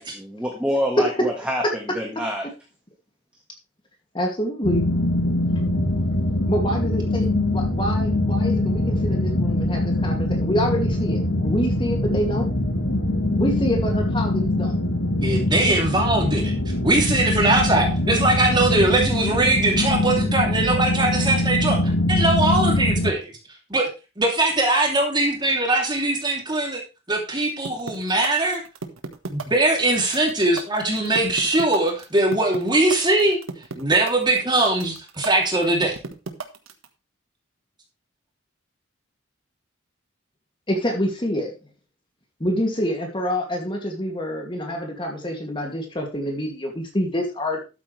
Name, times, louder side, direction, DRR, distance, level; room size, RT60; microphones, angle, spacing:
voice 1, 0.0-1.6 1.9-2.5, equal, 5° right, -1 dB, 1.7 m, -26 dB
voice 2, 4.1-4.9 6.5-12.5 13.4-14.8 40.7-41.5 42.4-47.6, equal, 25° left, 2 dB, 2.4 m, -26 dB
sound 1, 4.6-23.1, left 1 dB, 65° left, 2.1 m, -23 dB
voice 3, 15.2-16.5 16.8-23.3 23.7-23.9 24.2-26.8 27.1-28.6 29.3-33.4 33.7-36.0, right 2 dB, 20° right, 1 dB, 2.9 m, -21 dB
sound 2, 27.6-36.9, right 3 dB, 85° right, 1.4 m, -33 dB
12.5 x 8.4 x 3.3 m, 0.29 s
head